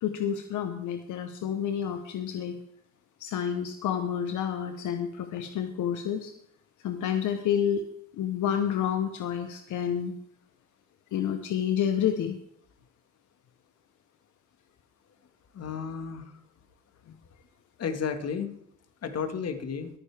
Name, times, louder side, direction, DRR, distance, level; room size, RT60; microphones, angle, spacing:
voice 1, 0.0-2.6 3.2-6.3 6.8-7.8 8.1-10.1 11.1-12.4, left 9 dB, 80° left, 7 dB, 1.0 m, -29 dB
voice 2, 15.5-16.3 17.8-18.5 19.0-19.9, left 6 dB, 55° left, 8 dB, 1.8 m, -32 dB
22.0 x 9.5 x 3.5 m, 0.72 s
cardioid pair, 90°, 30 cm